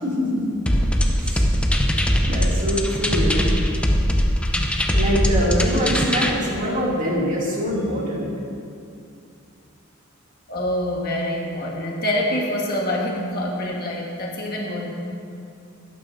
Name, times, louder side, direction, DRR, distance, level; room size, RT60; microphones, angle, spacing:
voice 1, 0.0-0.5 1.1-1.8 2.3-3.6 4.9-8.3, equal, 40° right, -6 dB, 2.8 m, -24 dB
sound 1, 0.7-6.3, equal, 5° left, 0.7 m, -20 dB
voice 2, 10.5-14.9, left 1 dB, 50° left, -2 dB, 1.6 m, -26 dB
20.0 x 9.2 x 2.8 m, 2.5 s
head